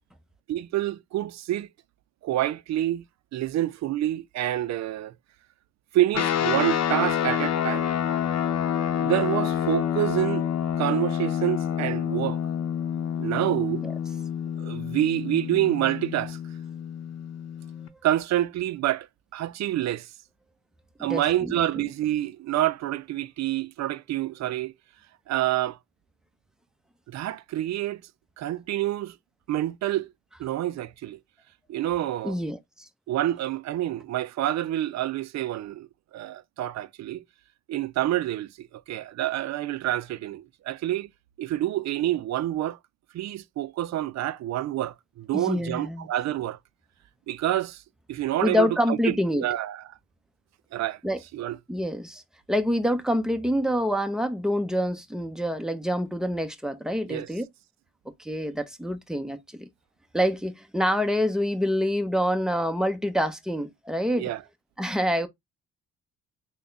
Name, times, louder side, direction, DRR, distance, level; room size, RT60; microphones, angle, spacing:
voice 1, 0.5-1.7 2.2-3.0 3.3-5.1 5.9-7.9 9.0-10.5 10.8-12.4 13.2-13.8 14.6-16.4 18.0-19.1 19.3-20.1 21.0-24.7 25.3-25.8 27.1-28.0 28.4-29.2 29.5-30.1 30.4-31.2 31.7-32.4 33.1-37.2 37.7-41.1 41.4-42.8 43.1-46.6 47.3-47.8 48.1-49.8 50.7-51.0 51.3-51.6 57.1-57.3 64.2-64.4, right 13 dB, 60° right, 0.5 m, -27 dB
sound 1, 6.1-17.9, left 9 dB, 60° left, 0.7 m, -28 dB
voice 2, 21.1-21.5 32.2-32.6 45.3-46.1 48.4-49.5 51.0-51.2 51.7-52.2 52.5-57.4 58.2-59.7 60.1-64.3 64.8-65.3, equal, ahead, 0.7 m, -26 dB
3.5 x 2.2 x 3.8 m
cardioid pair, 90°, 30 cm